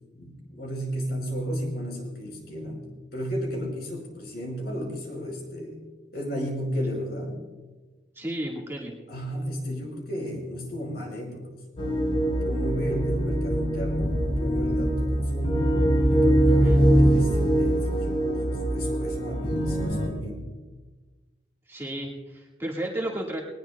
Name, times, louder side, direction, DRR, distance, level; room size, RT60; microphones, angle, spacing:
voice 1, 0.1-5.8 6.1-7.5 9.1-11.7 12.4-15.7 16.1-20.5, equal, 55° left, 0 dB, 5.4 m, -33 dB
voice 2, 8.2-8.9 16.5-16.8 21.7-23.4, right 1 dB, 15° right, -2 dB, 1.7 m, -33 dB
sound 1, 11.8-20.1, right 1 dB, 30° left, 3.9 m, -23 dB
21.0 x 19.5 x 2.3 m, 1.2 s
head